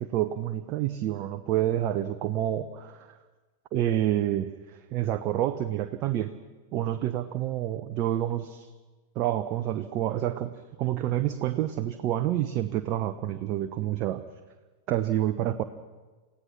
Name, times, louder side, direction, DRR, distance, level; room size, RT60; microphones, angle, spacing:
voice 1, 0.0-3.2 3.7-6.3 6.7-8.7 9.1-14.2 14.9-15.6, right 12 dB, 40° right, 8 dB, 0.9 m, -28 dB
29.0 x 16.5 x 5.9 m, 1.3 s
figure-of-eight pair, 90°, 0 cm